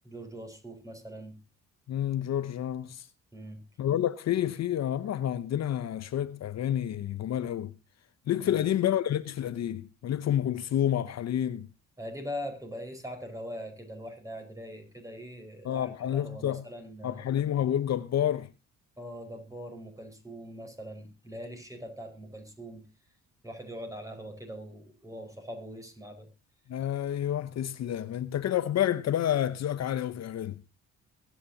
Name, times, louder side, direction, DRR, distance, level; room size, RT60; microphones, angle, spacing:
voice 1, 0.0-1.3 3.3-3.6 8.4-8.6 12.0-17.2 19.0-22.9 23.4-26.3, equal, 10° right, 4.8 m, -42 dB
voice 2, 1.9-3.1 3.8-7.7 8.3-11.7 15.6-16.7 17.0-18.5 26.7-30.6, left 11 dB, 60° left, 0.8 m, -29 dB
22.5 x 9.5 x 2.8 m
cardioid pair, 90°, 30 cm